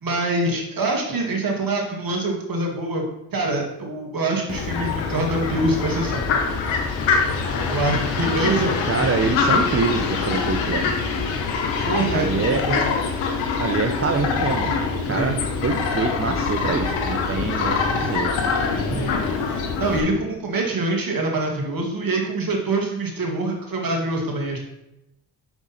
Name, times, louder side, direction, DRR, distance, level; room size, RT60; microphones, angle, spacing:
voice 1, 0.0-3.0 3.3-6.3 7.7-9.3 11.8-12.9 15.1-15.3 18.9-19.2 19.5-24.7, right 2 dB, 50° right, 1 dB, 2.3 m, -25 dB
Fowl, 4.5-20.0, left 5 dB, 80° left, 1.1 m, -24 dB
voice 2, 8.9-10.9 12.1-12.6 13.6-14.8 15.0-18.3, right 4 dB, 30° right, 4 dB, 0.8 m, -25 dB
6.9 x 5.5 x 4.3 m, 0.87 s
hypercardioid pair, 40°, 44 cm